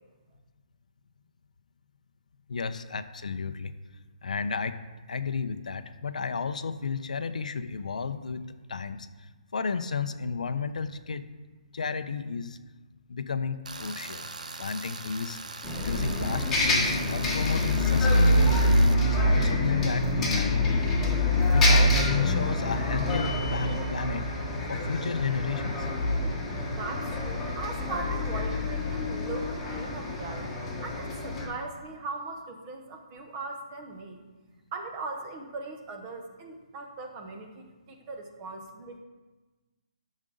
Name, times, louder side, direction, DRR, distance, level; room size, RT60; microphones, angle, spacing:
voice 1, 2.5-3.7 4.2-4.8 5.1-9.1 9.5-11.3 11.7-12.6 13.1-14.3 14.6-15.4 15.8-20.8 21.1-24.3 24.7-25.9, left 5 dB, 70° left, 10 dB, 0.7 m, -32 dB
Tools, 13.7-18.9, right 3 dB, 80° right, 1.0 m, -41 dB
Bus, 15.6-31.4, left 1 dB, 5° left, 1.4 m, -26 dB
voice 2, 26.7-30.5 30.8-34.2 34.7-39.0, right 3 dB, 20° right, 4 dB, 0.9 m, -39 dB
12.5 x 6.3 x 3.9 m, 1.2 s
hypercardioid pair, 170°, 4 cm